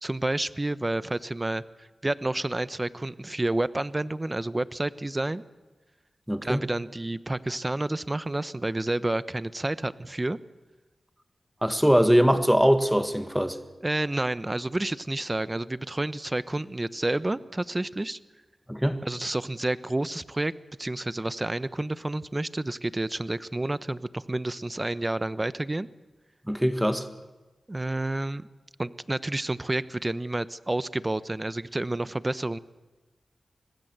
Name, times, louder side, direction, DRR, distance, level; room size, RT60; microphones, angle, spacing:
voice 1, 0.0-5.4 6.4-10.4 13.8-18.2 19.0-20.5 20.8-25.9 27.7-28.4 28.8-32.6, right 2 dB, 25° right, 15 dB, 0.9 m, -30 dB
voice 2, 6.3-6.7 11.6-13.6 18.7-19.0 26.5-27.1, equal, 5° right, 9 dB, 1.8 m, -22 dB
25.0 x 19.5 x 8.1 m, 1.1 s
cardioid pair, 50°, 0 cm